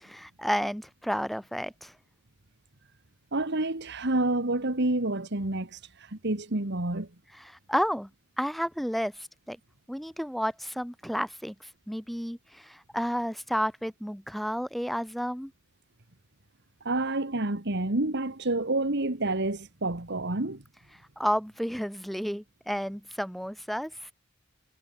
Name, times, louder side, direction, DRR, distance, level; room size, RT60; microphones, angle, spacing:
voice 1, 0.0-1.9 7.4-8.1 8.4-9.6 9.9-11.5 11.9-15.5 21.2-24.1, equal, ahead, 3.5 m, -31 dB
voice 2, 3.3-7.1 16.8-20.6, right 2 dB, 55° right, 2.0 m, -28 dB
head